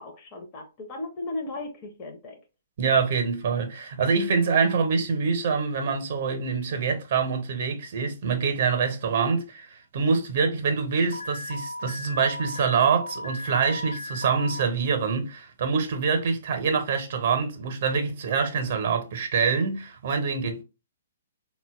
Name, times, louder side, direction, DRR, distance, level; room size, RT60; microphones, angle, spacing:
voice 1, 0.0-2.4, left 2 dB, 30° left, 0.6 m, -36 dB
voice 2, 2.8-20.6, right 5 dB, 50° right, 0.6 m, -25 dB
Alarm, 11.1-14.6, left 1 dB, 70° left, 0.4 m, -36 dB
3.9 x 2.1 x 2.2 m
figure-of-eight pair, 120°, 0 cm